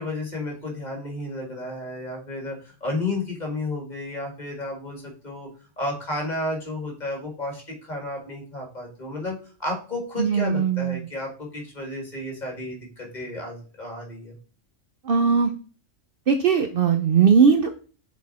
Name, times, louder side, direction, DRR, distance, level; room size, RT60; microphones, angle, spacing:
voice 1, 0.0-5.5 5.8-14.4, left 2 dB, 35° left, 0 dB, 2.0 m, -32 dB
voice 2, 10.2-11.1 15.1-15.5 16.3-17.7, right 6 dB, 60° right, 7 dB, 0.7 m, -19 dB
6.5 x 4.1 x 4.1 m, 0.38 s
omnidirectional pair, 1.3 m